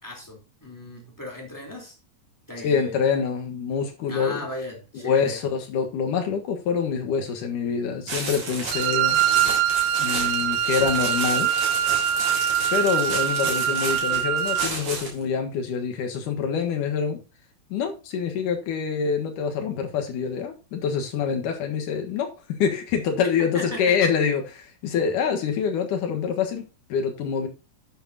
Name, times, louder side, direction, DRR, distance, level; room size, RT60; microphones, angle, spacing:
voice 1, 0.0-1.9 2.5-3.0 4.1-5.4 23.5-24.0, left 1 dB, 5° left, 3.1 m, -36 dB
voice 2, 2.6-4.4 5.0-9.2 10.0-11.5 12.7-17.2 17.7-27.5, left 6 dB, 65° left, 2.9 m, -26 dB
sound 1, 8.1-15.2, right 3 dB, 50° right, 4.3 m, -32 dB
Wind instrument woodwind instrument, 8.7-14.7, right 10 dB, 85° right, 2.8 m, -23 dB
11.0 x 8.7 x 2.8 m
omnidirectional pair, 4.1 m